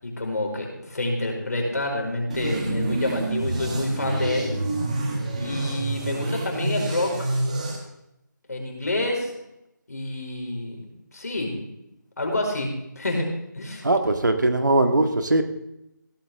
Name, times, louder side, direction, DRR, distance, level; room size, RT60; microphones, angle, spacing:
voice 1, 0.0-4.5 5.4-7.3 8.5-9.3 9.9-10.9 11.1-11.6 12.2-12.7 13.0-13.3 13.5-13.8, left 1 dB, 55° left, 1 dB, 4.7 m, -27 dB
sound 1, 2.3-7.8, right 2 dB, 20° right, 1.7 m, -28 dB
voice 2, 13.8-15.4, right 2 dB, 70° right, 6 dB, 1.7 m, -20 dB
17.0 x 12.0 x 3.6 m, 0.86 s
figure-of-eight pair, 175°, 10 cm